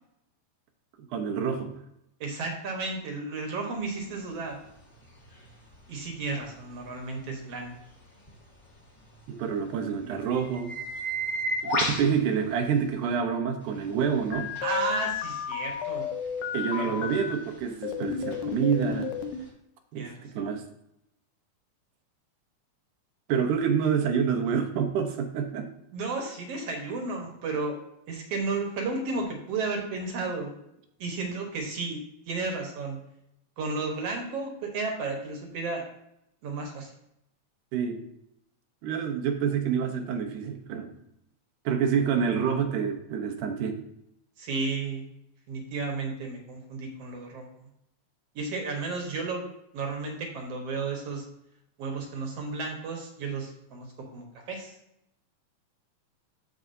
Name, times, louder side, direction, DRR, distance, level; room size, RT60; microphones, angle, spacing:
voice 1, 1.0-1.7 9.3-10.8 11.6-14.5 16.5-19.1 19.9-20.6 23.3-25.7 37.7-38.0 38.8-40.9 41.7-43.8, right 7 dB, 90° right, 5 dB, 2.4 m, -27 dB
voice 2, 2.2-4.6 5.9-7.7 14.6-16.1 16.5-17.1 20.0-20.6 25.9-27.8 28.1-30.6 31.0-33.0 33.6-35.8 36.4-36.9 44.4-45.1 45.5-47.5 48.4-49.4 49.7-51.3 51.8-54.7, right 3 dB, 60° right, 2 dB, 2.1 m, -33 dB
sound 1, 3.9-13.2 13.6-19.5, equal, 30° left, 2.4 m, -37 dB
sound 2, 14.3-17.3 17.8-19.4, left 7 dB, 90° left, 2.2 m, -32 dB
14.0 x 4.7 x 2.7 m, 0.80 s
omnidirectional pair, 3.5 m